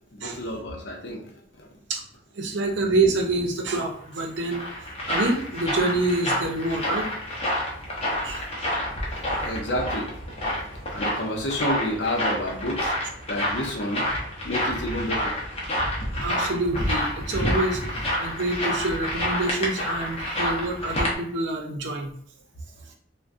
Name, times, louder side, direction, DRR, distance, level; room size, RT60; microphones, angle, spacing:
voice 1, 0.1-1.2 1.6-1.7 9.1-10.1 10.6-13.0 13.3-14.1 14.4-15.4, left 1 dB, 65° left, 0 dB, 0.7 m, -30 dB
voice 2, 2.3-7.1 8.2-8.7 16.2-22.1, right 2 dB, 70° right, 1 dB, 0.6 m, -27 dB
sound 1, 4.1-21.1, left 1 dB, 35° left, 0.7 m, -28 dB
3.5 x 2.2 x 2.5 m, 0.67 s
head